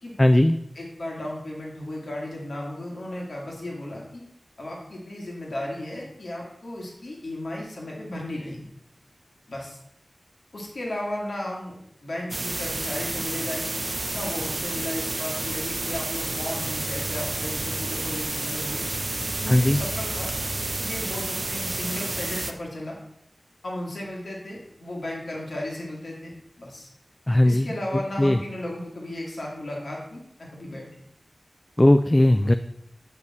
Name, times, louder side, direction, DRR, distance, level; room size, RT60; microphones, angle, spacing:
voice 1, 0.2-0.6 19.5-19.8 27.3-27.7 28.2-28.4 31.8-32.5, left 1 dB, 25° left, 8 dB, 0.3 m, -18 dB
voice 2, 0.8-4.2 4.6-8.6 9.5-9.8 10.5-11.7 12.0-13.8 14.1-18.8 19.4-20.4 20.8-23.0 23.6-26.3 26.6-26.9 27.4-30.8, left 1 dB, 80° left, -3 dB, 1.9 m, -35 dB
sound 1, 12.3-22.5, right 2 dB, 50° right, 0.6 m, -30 dB
8.2 x 5.1 x 4.1 m, 0.76 s
wide cardioid pair, 65°, 0 cm